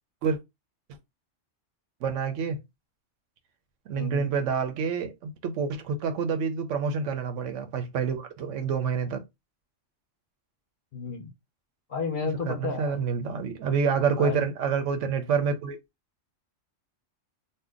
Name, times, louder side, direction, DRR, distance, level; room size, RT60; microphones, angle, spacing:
voice 1, 2.0-2.6 3.9-9.2 12.5-15.8, right 6 dB, 75° right, 1.0 m, -27 dB
voice 2, 3.9-4.3 10.9-11.3 11.9-13.0 14.2-14.4, left 5 dB, 55° left, 0.7 m, -32 dB
2.7 x 2.1 x 3.6 m
omnidirectional pair, 1.3 m